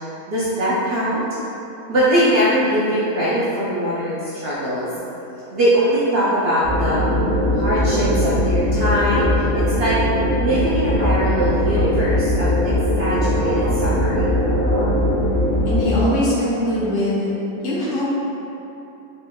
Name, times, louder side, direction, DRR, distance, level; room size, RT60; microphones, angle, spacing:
voice 1, 0.3-1.2 1.9-4.9 5.5-7.0 7.5-10.0 10.4-14.4, equal, 70° right, -9 dB, 0.6 m, -21 dB
sound 1, 6.6-15.9, left 1 dB, 50° right, 1.0 m, -20 dB
voice 2, 15.6-17.3 17.6-18.1, equal, 60° left, -8 dB, 1.1 m, -21 dB
3.6 x 3.2 x 2.2 m, 2.9 s
omnidirectional pair, 1.5 m